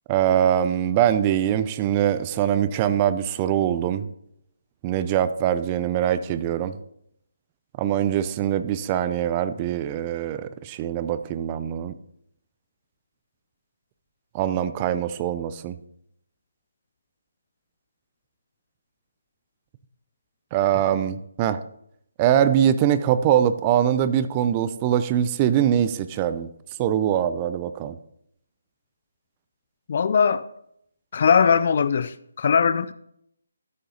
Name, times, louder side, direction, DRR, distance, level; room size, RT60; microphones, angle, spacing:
voice 1, 0.1-4.1 4.8-6.8 7.8-11.9 14.3-15.8 20.5-21.6 22.2-26.5 26.8-28.0, right 10 dB, 25° right, 0.5 m, -23 dB
voice 2, 29.9-30.5 31.1-32.9, left 6 dB, 50° left, 0.4 m, -20 dB
12.5 x 5.5 x 3.9 m
figure-of-eight pair, 150°, 0 cm